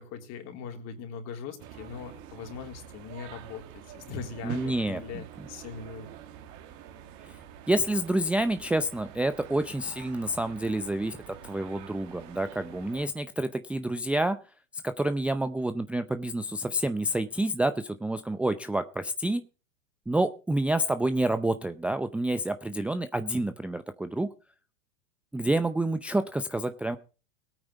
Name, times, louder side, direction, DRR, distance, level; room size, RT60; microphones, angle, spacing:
voice 1, 0.0-6.1, left 5 dB, 45° left, 5 dB, 3.7 m, -40 dB
sound 1, 1.6-13.1, right 9 dB, 50° right, 2.5 m, -46 dB
voice 2, 4.4-5.0 7.7-11.2 11.4-14.4 14.8-19.4 20.1-24.3 25.3-27.0, right 1 dB, 5° right, 9 dB, 0.5 m, -28 dB
19.0 x 9.1 x 4.1 m, 0.34 s
hypercardioid pair, 120°, 38 cm